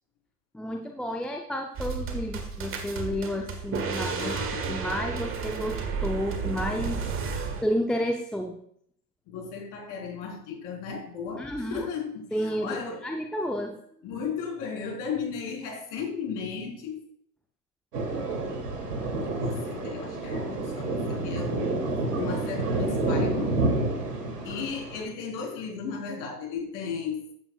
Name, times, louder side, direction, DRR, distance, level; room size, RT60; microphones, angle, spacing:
voice 1, 0.5-4.4 4.7-7.0 7.6-8.6 11.4-11.9 12.3-12.8 13.0-13.8, equal, ahead, 2 dB, 0.6 m, -31 dB
sound 1, 1.8-7.6, right 5 dB, 25° right, 1.7 m, -32 dB
voice 2, 4.2-4.9 9.3-13.1 14.0-17.0 19.2-21.8 22.1-23.5 24.4-27.2, left 6 dB, 40° left, 0 dB, 4.1 m, -35 dB
Thunder, 17.9-25.0, right 2 dB, 75° right, 2.9 m, -29 dB
14.0 x 8.8 x 2.4 m, 0.65 s
hypercardioid pair, 100°, 48 cm